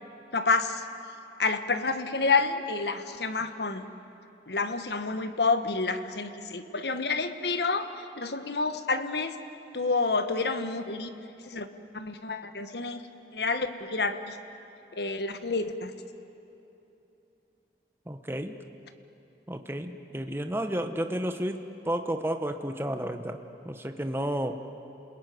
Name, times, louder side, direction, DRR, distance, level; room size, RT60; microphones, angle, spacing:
voice 1, 0.3-0.9 1.4-3.9 4.5-9.3 9.7-11.1 11.4-11.7 11.9-13.1 13.3-14.4 14.9-15.9, left 4 dB, 70° left, 9 dB, 1.4 m, -29 dB
voice 2, 18.1-18.5 19.5-21.6 21.8-23.4 23.6-24.6, right 1 dB, 15° right, 7 dB, 1.0 m, -31 dB
29.0 x 21.0 x 9.4 m, 2.9 s
head